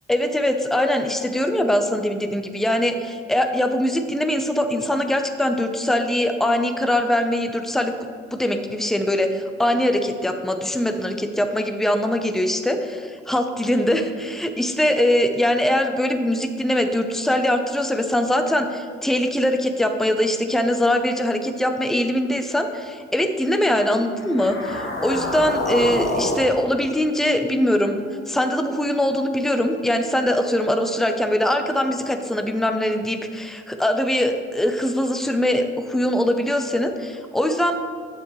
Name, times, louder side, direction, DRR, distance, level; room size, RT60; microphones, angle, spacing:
voice 1, 0.1-7.9 8.3-28.0 28.3-37.7, left 1 dB, ahead, 6 dB, 0.7 m, -22 dB
sound 1, 24.2-28.6, left 2 dB, 45° left, 1.7 m, -28 dB
9.1 x 7.3 x 3.2 m, 2.2 s
hypercardioid pair, 50°, 29 cm